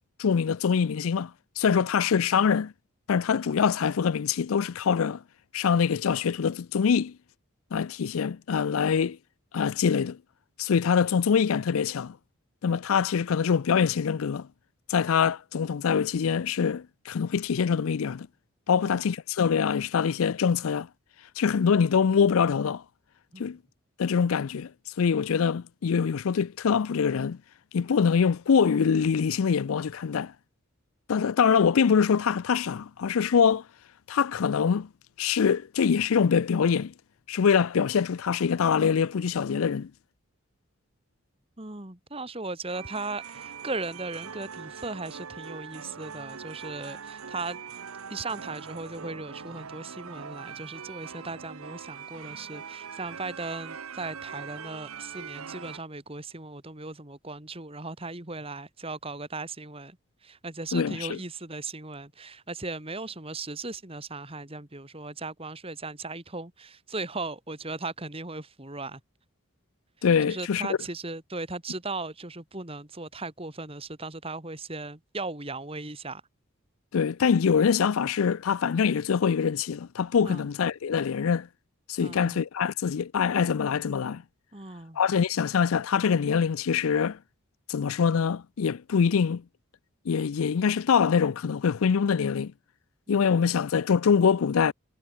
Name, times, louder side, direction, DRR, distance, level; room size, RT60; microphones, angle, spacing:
voice 1, 0.2-1.3 1.6-2.7 3.1-5.2 5.5-7.1 7.7-9.2 9.5-10.2 10.6-12.2 12.6-14.5 14.9-18.3 18.7-20.9 21.4-22.8 23.4-23.6 24.0-24.7 25.0-27.4 27.7-30.3 31.1-33.6 34.1-34.9 35.2-36.9 37.3-39.9 60.7-61.2 70.0-70.7 76.9-81.5 81.9-84.2 85.0-87.2 87.7-89.4 90.1-92.5 93.1-94.7, left 6 dB, 80° left, 0.4 m, -24 dB
voice 2, 1.7-2.0 18.7-19.0 23.3-23.6 41.6-47.6 48.1-69.0 70.3-76.2 80.2-80.5 82.0-82.5 84.5-85.0, right 3 dB, 25° right, 2.3 m, -37 dB
sound 1, 42.7-55.8, right 6 dB, 85° right, 0.9 m, -42 dB
head